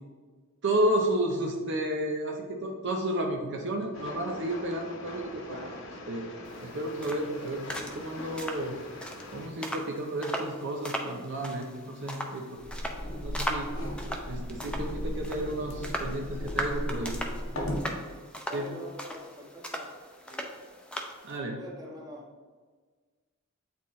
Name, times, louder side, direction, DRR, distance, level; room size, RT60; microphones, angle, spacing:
voice 1, 0.6-5.8 6.1-6.3 6.6-7.7 7.9-8.8 9.3-12.6 13.0-13.7 14.3-17.2 18.5-18.7 21.2-21.6, right 1 dB, 60° right, 1 dB, 0.7 m, -32 dB
Train, 3.9-9.5, left 2 dB, 65° left, 1.0 m, -43 dB
sound 1, 6.5-21.4, equal, 5° left, 0.6 m, -39 dB
sound 2, 12.6-17.9, equal, 90° left, 1.6 m, -36 dB
voice 2, 18.5-19.9 20.3-20.5 21.6-22.3, equal, 20° right, -2 dB, 1.3 m, -44 dB
8.7 x 4.2 x 3.1 m, 1.5 s
head